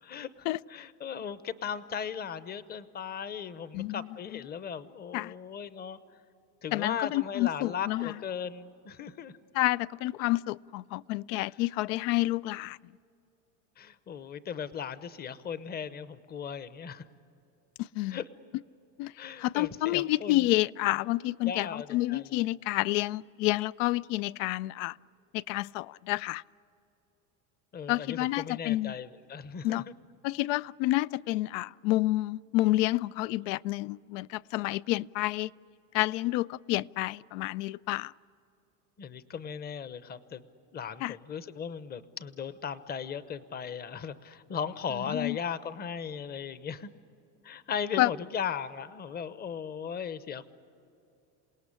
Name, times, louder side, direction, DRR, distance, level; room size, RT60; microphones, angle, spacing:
voice 1, 0.0-6.0 6.6-9.3 13.8-17.0 18.1-18.2 19.2-20.5 21.4-22.4 27.7-29.8 39.0-40.4 40.7-46.9 47.4-50.5, left 7 dB, 25° left, 0.8 m, -37 dB
voice 2, 3.7-4.1 5.1-5.3 6.7-8.1 9.5-12.8 17.8-18.2 19.0-19.1 19.4-25.0 25.3-26.4 27.9-28.9 29.6-29.8 30.2-35.5 35.9-38.1 41.0-41.2 45.1-45.4 48.0-48.1, left 18 dB, 85° left, 0.5 m, -29 dB
28.0 x 18.5 x 9.9 m
cardioid pair, 140°, 37 cm